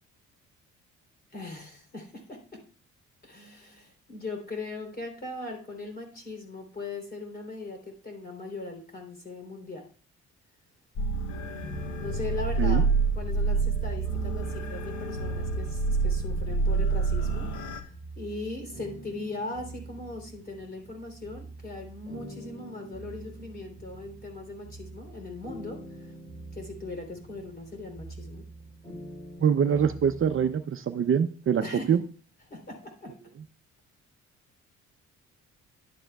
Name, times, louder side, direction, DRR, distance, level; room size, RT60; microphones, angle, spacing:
voice 1, 1.3-2.6 3.2-9.9 11.4-12.9 13.1-17.5 17.8-26.1 26.5-28.4 31.6-32.0 32.5-33.1, left 2 dB, 30° left, 3 dB, 3.3 m, -39 dB
sound 1, 11.0-17.8, right 4 dB, 75° left, 1.1 m, -27 dB
sound 2, 11.6-13.3 14.0-30.5, right 2 dB, 10° left, 3.8 m, -46 dB
voice 2, 29.4-31.6 31.9-32.0, right 7 dB, 45° right, 9 dB, 0.6 m, -24 dB
11.0 x 8.7 x 2.3 m, 0.43 s
cardioid pair, 90°, 30 cm